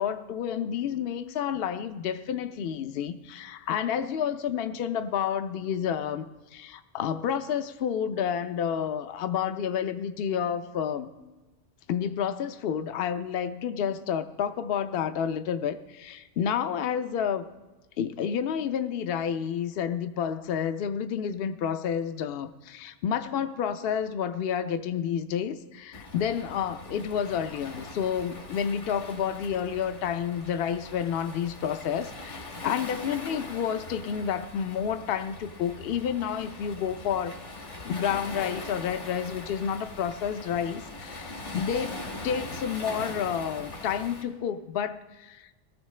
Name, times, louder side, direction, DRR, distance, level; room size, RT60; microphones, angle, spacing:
voice 1, 0.0-11.1 11.9-17.5 18.0-37.3 37.8-42.0 42.2-45.5, left 8 dB, 60° left, 0.8 m, -30 dB
Waves surf, 25.9-44.2, left 2 dB, 80° left, 2.2 m, -41 dB
20.0 x 14.0 x 3.2 m
omnidirectional pair, 1.2 m